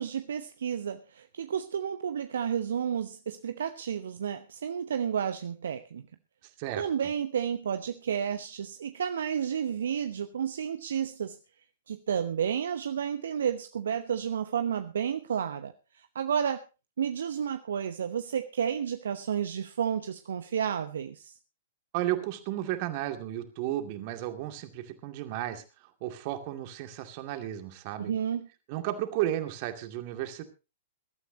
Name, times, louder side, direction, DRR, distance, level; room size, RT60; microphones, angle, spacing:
voice 1, 0.0-6.0 6.8-11.4 11.9-16.6 17.0-21.3 28.0-28.5, right 8 dB, 65° right, 10 dB, 0.9 m, -31 dB
voice 2, 21.9-28.1 28.7-30.4, right 13 dB, 45° right, 7 dB, 2.3 m, -33 dB
22.0 x 12.5 x 2.9 m, 0.29 s
figure-of-eight pair, 110°, 0 cm